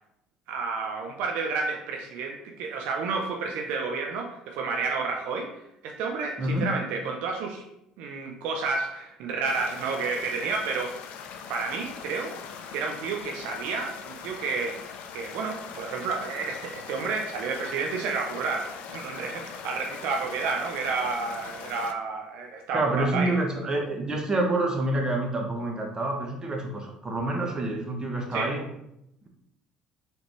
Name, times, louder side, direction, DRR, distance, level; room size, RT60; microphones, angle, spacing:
voice 1, 0.5-7.6 8.0-10.9 11.5-12.4 12.7-14.9 15.1-23.4 28.3-28.5, right 4 dB, 70° right, 2 dB, 0.5 m, -31 dB
voice 2, 6.4-6.7 22.7-28.7, right 2 dB, 25° right, 1 dB, 1.0 m, -27 dB
sound 1, 9.4-21.9, left 7 dB, 65° left, 0.4 m, -41 dB
4.0 x 3.4 x 3.0 m, 0.80 s
hypercardioid pair, 65°, 3 cm